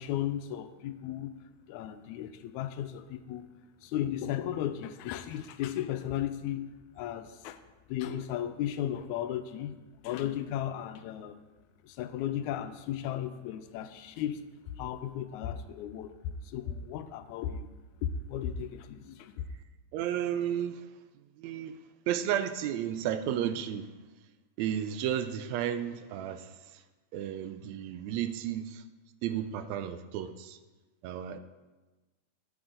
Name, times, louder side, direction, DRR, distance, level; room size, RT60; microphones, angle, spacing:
voice 1, 0.0-1.3 1.7-3.5 3.8-6.7 7.0-7.6 7.9-9.8 10.0-11.4 11.8-14.4 14.7-16.2 16.4-17.7 18.0-19.5, left 10 dB, 85° left, 10 dB, 1.9 m, -35 dB
voice 2, 19.9-20.9 21.1-21.8 22.1-23.9 24.6-26.8 27.1-28.8 29.2-30.6 31.0-31.4, right 10 dB, 80° right, 10 dB, 1.7 m, -33 dB
11.5 x 6.3 x 3.9 m, 1.2 s
omnidirectional pair, 3.4 m